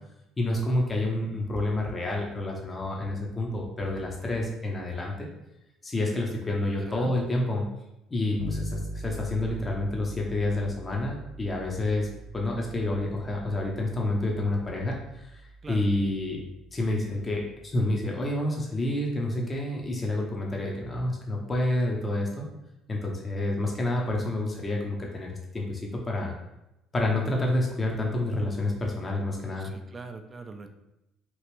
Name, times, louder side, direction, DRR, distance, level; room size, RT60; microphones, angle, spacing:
voice 1, 0.4-5.3 5.8-7.7 8.1-12.1 12.3-15.4 15.7-16.4 16.7-22.5 22.9-26.3 26.9-29.7, left 1 dB, 30° left, -1 dB, 0.6 m, -29 dB
voice 2, 6.8-7.1 15.6-15.9 29.6-30.7, right 4 dB, 35° right, 6 dB, 0.4 m, -42 dB
Bass guitar, 8.4-18.1, equal, 65° left, 0.6 m, -42 dB
3.0 x 2.4 x 3.1 m, 0.91 s
hypercardioid pair, 65°, 0 cm